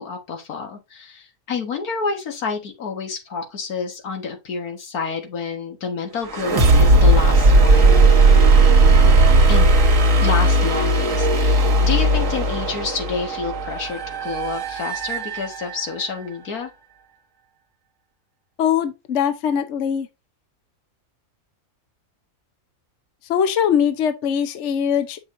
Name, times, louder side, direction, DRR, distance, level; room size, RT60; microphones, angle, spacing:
voice 1, 0.0-8.1 9.5-9.7 10.2-16.7, left 5 dB, 90° left, 2.0 m, -29 dB
sound 1, 6.3-16.0, right 2 dB, 60° right, 1.6 m, -16 dB
voice 2, 18.6-20.1 23.3-25.2, left 8 dB, 60° left, 1.0 m, -21 dB
7.8 x 6.1 x 2.6 m
omnidirectional pair, 1.5 m